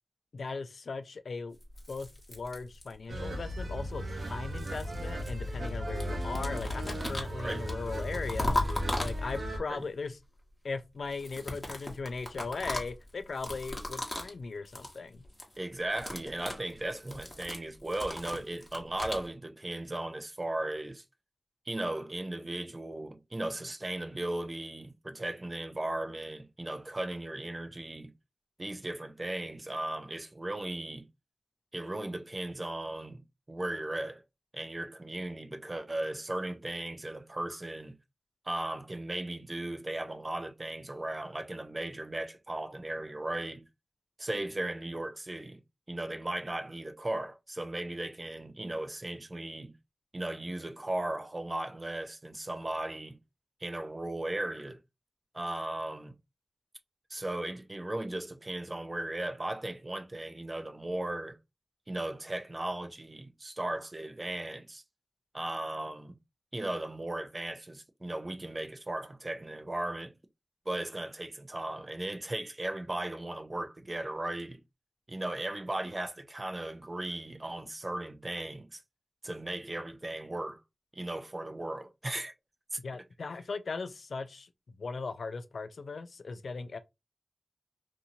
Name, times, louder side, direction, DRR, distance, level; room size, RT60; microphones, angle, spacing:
voice 1, 0.3-1.6 1.9-8.6 9.0-10.2 10.6-15.2 82.8-84.5 84.8-86.8, left 4 dB, 85° left, 0.3 m, -38 dB
sound 1, 1.6-3.2 4.1-5.7 6.0-9.6 11.0-14.4 14.6-15.0 15.2-15.6 15.8-19.3, left 1 dB, 35° left, 0.9 m, -38 dB
sound 2, 3.1-9.6, equal, 75° right, 0.6 m, -36 dB
voice 2, 7.4-7.7 9.7-9.8 15.6-21.0 21.7-28.1 28.6-31.1 31.7-33.2 33.5-34.2 34.5-38.0 38.5-43.6 44.2-45.6 45.9-49.7 50.1-53.2 53.6-54.8 55.3-56.1 57.1-61.4 61.9-64.8 65.3-66.1 66.5-70.1 70.7-74.6 75.1-78.8 79.2-80.6 81.0-82.3 82.7-82.8, right 1 dB, 35° right, 0.4 m, -36 dB
2.7 x 2.6 x 2.6 m
wide cardioid pair, 65°, 0 cm